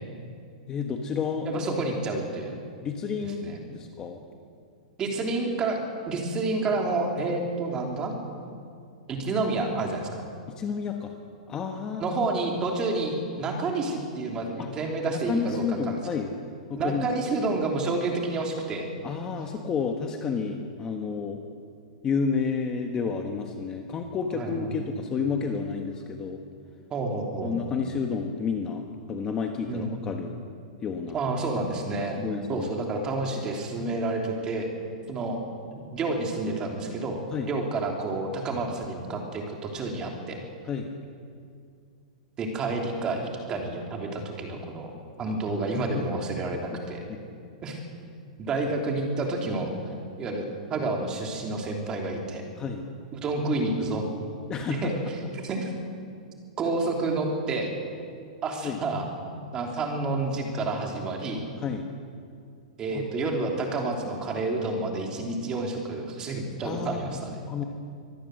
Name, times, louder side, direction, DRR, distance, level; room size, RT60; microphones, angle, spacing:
voice 1, 0.7-1.7 2.8-4.2 10.6-11.1 11.5-12.1 14.6-14.7 15.1-16.3 16.7-17.1 19.0-21.4 22.0-26.4 27.4-30.3 30.8-31.2 32.2-32.7 37.3-37.5 40.6-40.9 45.3-45.4 47.1-47.2 52.6-52.8 54.5-54.9 58.6-58.8 61.6-61.8 62.9-63.1 66.6-67.2 67.5-67.6, left 6 dB, 15° left, 4 dB, 1.3 m, -30 dB
voice 2, 1.5-2.6 3.4-3.6 5.0-8.1 9.1-10.2 12.0-16.0 16.7-18.9 24.4-24.7 26.9-27.5 29.7-29.9 31.1-32.2 32.5-34.7 35.1-35.4 35.9-40.4 42.4-44.9 45.2-47.0 47.6-47.8 48.4-49.7 50.2-50.4 50.7-52.4 53.1-54.0 54.7-54.9 55.4-55.7 56.6-57.7 58.4-59.0 59.5-61.4 62.8-67.4, right 3 dB, 20° right, 1 dB, 3.2 m, -29 dB
24.5 x 18.0 x 7.8 m, 2.3 s
supercardioid pair, 165°, 4 cm